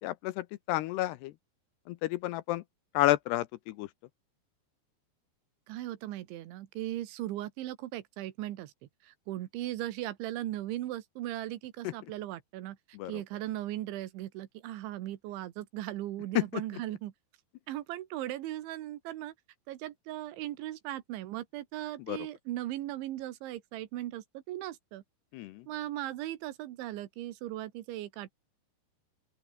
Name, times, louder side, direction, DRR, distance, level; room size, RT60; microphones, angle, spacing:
voice 1, 0.0-1.3 1.9-2.6 2.9-3.9 11.8-11.9 12.9-13.2 16.4-16.6 22.1-22.3 25.3-25.7, left 16 dB, 80° left, 2.5 m, -30 dB
voice 2, 5.7-8.7 9.0-12.8 13.1-17.1 17.7-19.3 19.7-25.0 25.7-28.3, right 14 dB, 90° right, 3.8 m, -38 dB
open air
omnidirectional pair, 5.3 m